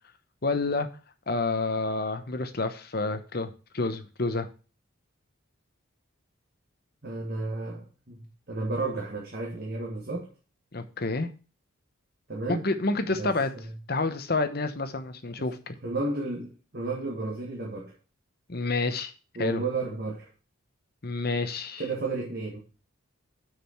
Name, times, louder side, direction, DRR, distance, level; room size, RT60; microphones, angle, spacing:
voice 1, 0.4-0.9 1.3-4.5 10.7-11.3 12.5-13.5 13.9-15.7 18.5-19.1 19.4-19.6 21.0-21.8, left 3 dB, 45° left, 9 dB, 0.9 m, -29 dB
voice 2, 7.0-8.2 8.5-10.3 12.3-12.6 13.0-13.7 15.4-15.5 15.8-17.9 19.3-20.3 21.8-22.6, right 3 dB, 45° right, -1 dB, 1.6 m, -33 dB
6.5 x 6.4 x 5.7 m, 0.36 s
head